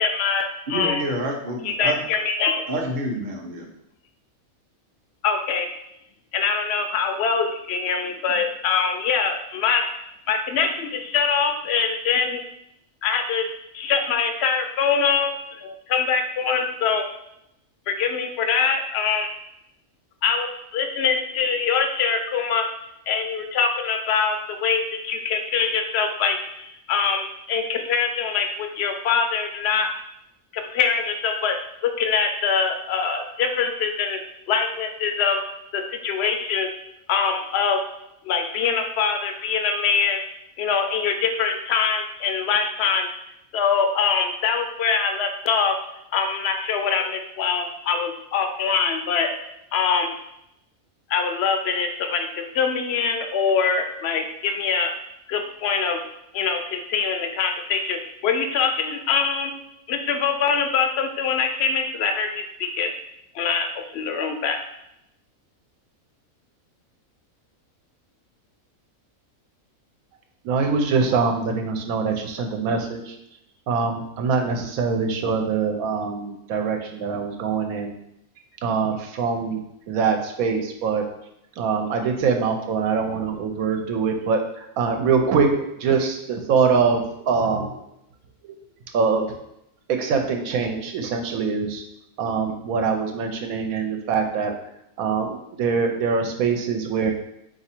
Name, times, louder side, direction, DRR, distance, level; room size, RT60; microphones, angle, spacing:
voice 1, 0.0-1.0 1.6-2.6 5.2-5.7 6.3-9.9 10.3-12.4 13.0-13.4 13.7-15.3 15.6-17.0 17.9-19.3 20.2-22.6 23.1-29.9 30.5-31.6 31.8-34.2 34.5-35.4 35.7-36.7 37.1-37.8 38.2-40.2 40.6-43.1 43.5-45.7 46.1-49.3 49.7-50.1 51.1-52.3 52.5-54.9 55.3-56.0 56.3-59.5 59.9-62.9 63.3-63.7 63.9-64.6, left 6 dB, 65° left, 5 dB, 0.6 m, -23 dB
voice 2, 0.7-2.0 2.7-3.7, right 1 dB, 45° right, 1 dB, 0.7 m, -28 dB
voice 3, 70.4-73.1 73.7-77.9 78.6-79.6 79.9-81.0 81.6-87.8 88.9-89.3 89.9-91.8 92.2-94.5 95.0-97.1, right 5 dB, 80° right, 4 dB, 1.0 m, -23 dB
3.9 x 2.7 x 4.3 m, 0.80 s
omnidirectional pair, 1.5 m